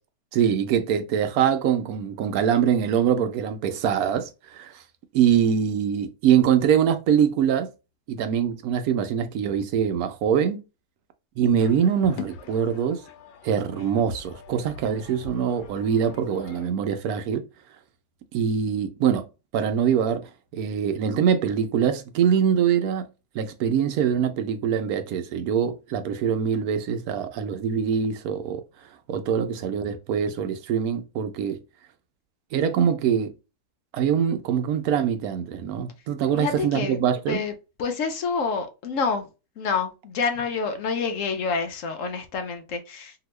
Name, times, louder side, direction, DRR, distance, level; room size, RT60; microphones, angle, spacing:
voice 1, 0.3-4.8 5.1-7.7 8.1-10.6 11.4-13.0 13.4-17.5 18.3-19.2 19.5-23.0 23.3-28.6 29.1-31.6 32.5-33.3 33.9-37.4, right 8 dB, 70° right, 1.0 m, -23 dB
sound 1, 11.6-16.7, left 5 dB, 85° left, 1.3 m, -42 dB
voice 2, 36.3-37.0 37.3-37.5 37.8-39.3 39.6-43.1, left 5 dB, 65° left, 0.8 m, -27 dB
2.9 x 2.7 x 3.1 m
omnidirectional pair, 1.8 m